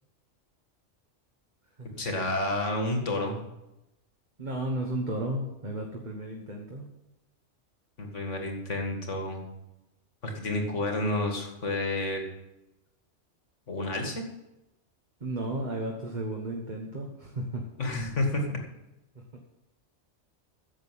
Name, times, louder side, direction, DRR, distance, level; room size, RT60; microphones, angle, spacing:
voice 1, 2.0-3.4 8.0-9.5 10.2-12.2 13.7-14.2 17.8-18.6, left 2 dB, 80° left, 3 dB, 2.4 m, -30 dB
voice 2, 4.4-6.9 15.2-17.6 19.1-19.4, right 1 dB, 40° right, 0 dB, 1.5 m, -34 dB
10.5 x 7.5 x 7.6 m, 0.93 s
omnidirectional pair, 1.2 m